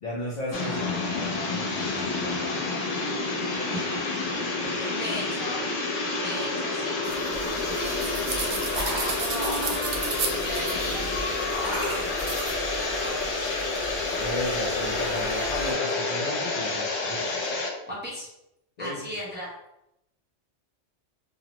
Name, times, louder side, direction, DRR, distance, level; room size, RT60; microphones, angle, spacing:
voice 1, 0.0-2.5 14.2-17.5 18.8-19.2, left 1 dB, 55° left, -5 dB, 0.5 m, -36 dB
sound 1, 0.5-17.7, left 3 dB, 90° left, 1.0 m, -29 dB
voice 2, 4.8-5.6 6.2-7.0 7.7-9.7 10.4-11.8 12.6-13.5 17.9-18.3 18.8-19.5, equal, 10° right, -7 dB, 0.6 m, -37 dB
sound 2, 7.0-12.5, right 4 dB, 60° right, 0.6 m, -34 dB
sound 3, 7.3-15.7, equal, 45° right, 1.3 m, -39 dB
2.8 x 2.0 x 2.9 m, 0.84 s
omnidirectional pair, 1.2 m